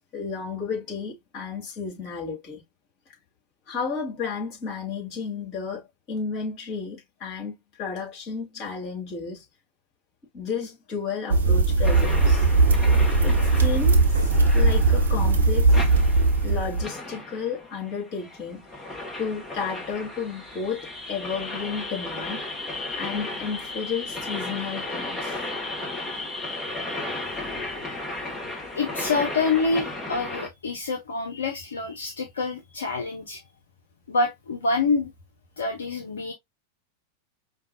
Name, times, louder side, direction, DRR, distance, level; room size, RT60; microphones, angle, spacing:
voice 1, 0.1-2.6 3.7-9.4 10.3-12.4 13.2-15.8 16.4-18.8 19.2-22.4 22.9-25.4, left 5 dB, 35° left, 2.3 m, -32 dB
sound 1, 11.3-16.8, right 3 dB, 70° right, 1.0 m, -19 dB
sound 2, 11.8-30.5, left 2 dB, 10° left, 1.2 m, -35 dB
voice 2, 28.7-33.4 34.1-35.1 35.6-36.3, left 3 dB, 70° left, 0.7 m, -27 dB
5.1 x 2.3 x 2.6 m
figure-of-eight pair, 90°, 0 cm